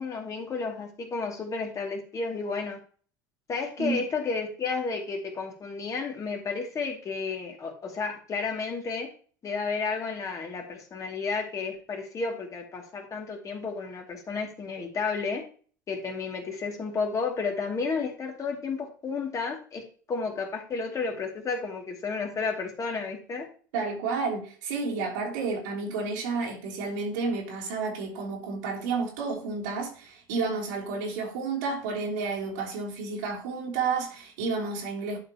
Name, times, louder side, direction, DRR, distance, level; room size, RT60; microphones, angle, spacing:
voice 1, 0.0-2.8 3.5-9.1 9.4-15.4 15.9-23.5, left 4 dB, 30° left, 2.5 m, -32 dB
voice 2, 23.7-35.2, right 4 dB, 70° right, 3.0 m, -31 dB
11.5 x 5.2 x 2.9 m
hypercardioid pair, 75°, 10 cm